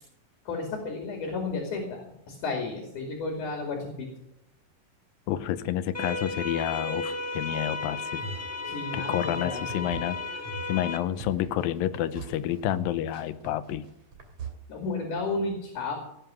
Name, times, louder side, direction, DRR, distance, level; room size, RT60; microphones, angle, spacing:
voice 1, 0.5-4.1 8.7-9.9 14.7-16.0, left 3 dB, 60° left, 2 dB, 3.9 m, -33 dB
voice 2, 5.3-8.2 8.9-13.9, left 11 dB, 90° left, 13 dB, 2.5 m, -30 dB
sound 1, 5.9-11.0, left 3 dB, 5° left, 1.5 m, -34 dB
sound 2, 7.9-14.5, right 3 dB, 45° right, 3.4 m, -42 dB
17.5 x 9.7 x 6.4 m, 0.80 s
omnidirectional pair, 4.1 m